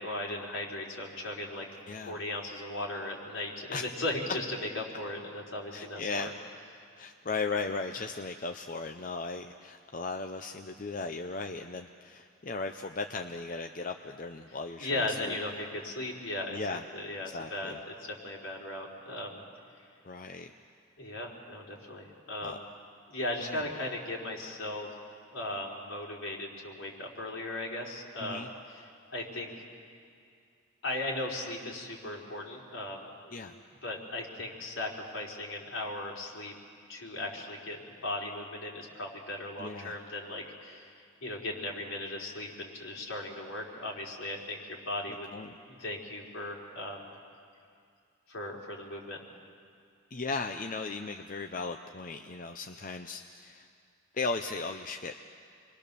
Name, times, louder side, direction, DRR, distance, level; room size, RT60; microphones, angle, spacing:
voice 1, 0.0-1.6 2.1-6.3 14.8-17.7 18.0-19.4 21.0-22.6 23.1-24.9 25.3-28.8 29.1-29.5 30.8-36.5 36.9-40.9 41.2-45.3 45.7-47.1 48.3-49.2, left 1 dB, 75° left, -3 dB, 4.0 m, -37 dB
voice 2, 1.9-2.2 3.7-3.8 5.7-6.3 7.0-15.3 16.5-16.8 17.3-17.8 20.0-20.5 22.4-22.6 23.4-23.6 28.2-28.5 33.3-33.5 39.6-40.0 45.3-45.6 50.1-53.7 54.1-55.2, left 3 dB, 40° left, 5 dB, 0.6 m, -37 dB
27.5 x 22.0 x 6.9 m, 2.3 s
head